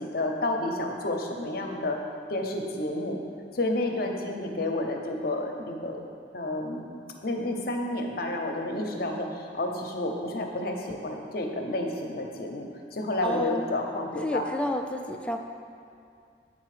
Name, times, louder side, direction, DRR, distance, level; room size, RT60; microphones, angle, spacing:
voice 1, 0.0-2.0 2.3-3.2 3.5-6.0 6.3-6.9 7.2-14.4, left 1 dB, 55° left, 2 dB, 0.7 m, -30 dB
voice 2, 13.2-13.7 14.2-15.4, equal, 5° left, 3 dB, 0.3 m, -30 dB
7.7 x 3.9 x 4.9 m, 2.4 s
head